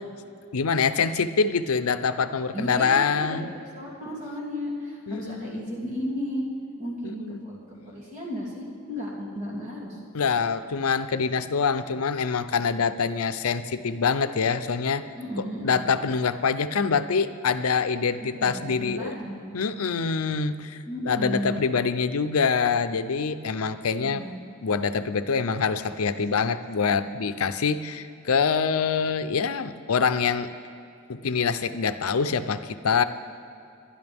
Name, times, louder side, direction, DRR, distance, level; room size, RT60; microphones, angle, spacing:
voice 1, 0.5-3.5 5.1-5.6 7.0-7.4 10.1-15.0 15.4-19.2 19.5-24.2 24.6-30.5 31.1-33.0, left 5 dB, 90° left, 12 dB, 0.6 m, -25 dB
voice 2, 2.5-3.4 3.7-6.4 6.8-7.6 7.9-10.0 15.2-15.8 18.2-19.5 20.9-21.6 24.0-24.4, equal, 35° right, -4 dB, 2.7 m, -34 dB
22.0 x 11.5 x 3.5 m, 2.6 s
head